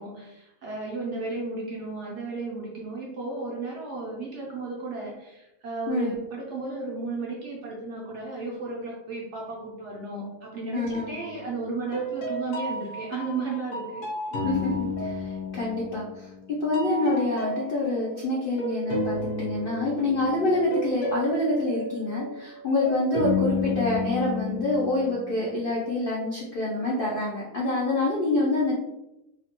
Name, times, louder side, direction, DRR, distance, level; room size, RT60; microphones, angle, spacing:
voice 1, 0.0-14.0, right 3 dB, 65° right, -3 dB, 0.7 m, -34 dB
voice 2, 10.7-11.1 14.3-14.7 15.0-28.7, left 2 dB, 80° left, -5 dB, 0.5 m, -26 dB
sound 1, 10.9-11.5 11.9-16.5 16.7-25.5, left 2 dB, 65° left, 0.8 m, -32 dB
2.7 x 2.1 x 2.8 m, 0.93 s
omnidirectional pair, 1.7 m